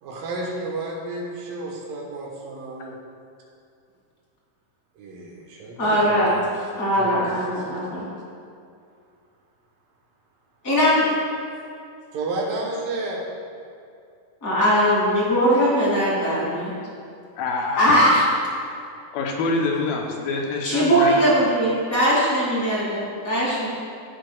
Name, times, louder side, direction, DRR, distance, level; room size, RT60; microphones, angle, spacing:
voice 1, 0.0-3.0 5.0-7.8 12.1-13.3, right 2 dB, 75° right, -2 dB, 2.8 m, -32 dB
voice 2, 5.8-6.4 6.8-8.1 10.6-11.1 14.4-16.7 17.8-18.2 20.6-23.7, equal, 30° left, -7 dB, 2.2 m, -20 dB
voice 3, 17.4-18.0 19.1-21.1, left 3 dB, 90° left, -1 dB, 2.7 m, -26 dB
15.5 x 6.7 x 2.3 m, 2.5 s
omnidirectional pair, 4.1 m